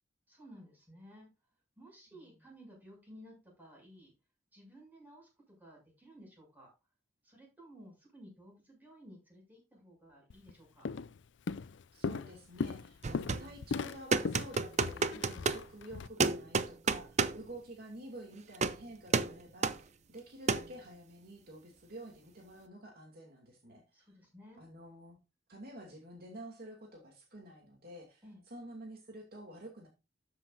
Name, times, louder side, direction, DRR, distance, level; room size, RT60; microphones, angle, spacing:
voice 1, 0.3-1.3 1.8-4.1 4.5-6.7 7.2-10.9 15.1-15.5 23.9-24.6 28.2-28.4, equal, 10° right, -2 dB, 7.0 m, -55 dB
Walk footsteps, 10.3-10.5 10.8-11.2 11.5-16.1, left 4 dB, 75° left, 0.5 m, -38 dB
voice 2, 11.9-15.1 15.4-24.1 24.6-25.2 25.5-29.9, right 1 dB, 55° right, 1 dB, 2.6 m, -50 dB
sound 1, 13.0-13.5 14.1-15.6 16.2-17.4 18.5-18.8 19.1-19.4 19.6-19.8 20.5-20.7, right 4 dB, 40° right, 0.6 m, -30 dB
13.0 x 7.6 x 2.6 m, 0.27 s
head